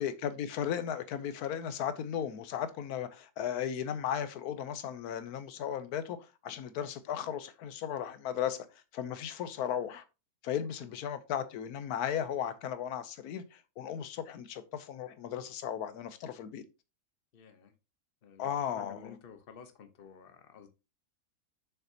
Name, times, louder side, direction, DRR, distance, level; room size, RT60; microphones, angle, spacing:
voice 1, 0.0-8.7 8.9-10.0 10.4-16.6 18.4-19.2, left 9 dB, 85° left, 1.2 m, -36 dB
voice 2, 17.3-17.7 18.2-20.7, left 6 dB, 40° left, 1.0 m, -52 dB
7.1 x 5.8 x 2.8 m
omnidirectional pair, 1.6 m